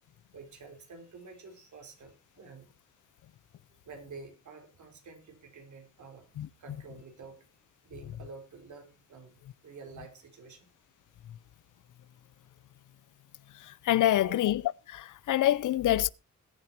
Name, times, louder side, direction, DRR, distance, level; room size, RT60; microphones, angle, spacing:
voice 1, 0.3-2.7 3.8-7.5 7.8-10.7 14.2-14.4, right 4 dB, 75° right, 4.1 m, -49 dB
voice 2, 13.6-14.6 14.9-16.1, left 13 dB, 90° left, 0.6 m, -26 dB
20.5 x 9.4 x 2.9 m
wide cardioid pair, 115°, 30 cm